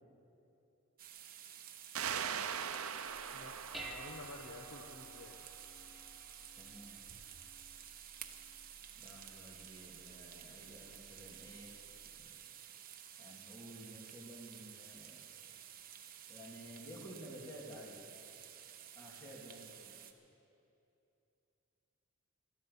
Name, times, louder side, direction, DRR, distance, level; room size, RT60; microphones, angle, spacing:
sound 1, 1.0-20.1, right 10 dB, 40° right, 0.9 m, -53 dB
sound 2, 1.9-5.3, right 7 dB, 75° right, 0.7 m, -41 dB
Dishes pots and pans, 3.1-12.3, right 1 dB, ahead, 1.0 m, -55 dB
voice 1, 3.3-5.4, left 2 dB, 60° left, 3 dB, 1.0 m, -51 dB
voice 2, 6.6-7.0 8.9-11.7 12.2-12.3 13.2-15.3 16.3-18.0 18.9-19.9, equal, 15° left, -4 dB, 2.9 m, -52 dB
19.0 x 13.0 x 5.6 m, 2.7 s
head